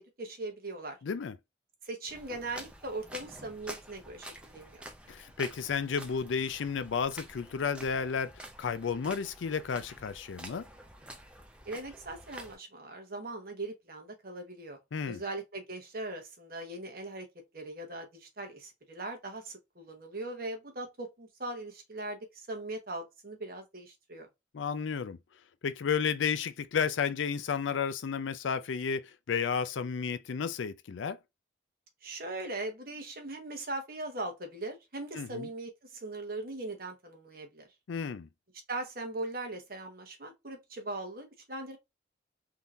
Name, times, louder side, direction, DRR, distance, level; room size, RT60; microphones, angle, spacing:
voice 1, 0.0-1.0 1.8-4.8 11.7-14.8 15.0-17.3 17.5-24.3 32.0-37.7 38.7-41.8, right 2 dB, 50° right, 1.1 m, -40 dB
voice 2, 1.0-1.3 5.1-10.7 14.9-15.2 24.5-25.2 25.6-31.2 35.1-35.5 37.9-38.3, left 6 dB, 90° left, 0.4 m, -32 dB
sound 1, 2.1-12.5, right 1 dB, 5° right, 0.5 m, -48 dB
3.6 x 2.8 x 2.4 m
head